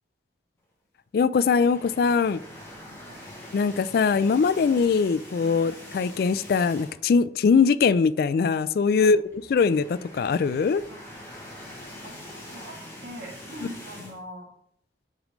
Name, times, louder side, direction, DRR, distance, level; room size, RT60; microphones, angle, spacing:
voice 1, 1.1-2.4 3.5-9.2 9.5-10.8, left 5 dB, 55° left, 16 dB, 0.3 m, -22 dB
sound 1, 1.4-7.2 7.5-7.7 8.0-8.1 9.1-14.2, left 1 dB, 15° left, 2.2 m, -44 dB
voice 2, 12.0-14.5, equal, 70° right, -2 dB, 2.5 m, -43 dB
8.2 x 5.1 x 3.1 m, 0.68 s
head